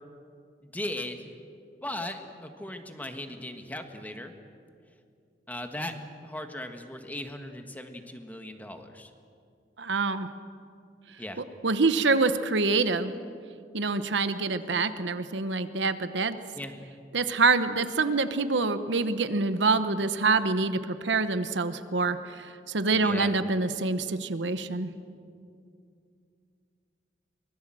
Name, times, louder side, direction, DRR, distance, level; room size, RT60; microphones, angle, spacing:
voice 1, 0.6-1.3 1.8-4.3 5.5-5.9 6.2-9.1 11.2-11.4 16.5-16.7 22.9-23.3, left 1 dB, 10° left, 5 dB, 1.5 m, -38 dB
voice 2, 9.8-10.3 11.6-13.1 13.7-16.4 17.1-24.9, right 3 dB, 75° right, 11 dB, 1.1 m, -26 dB
24.5 x 21.0 x 7.7 m, 2.4 s
head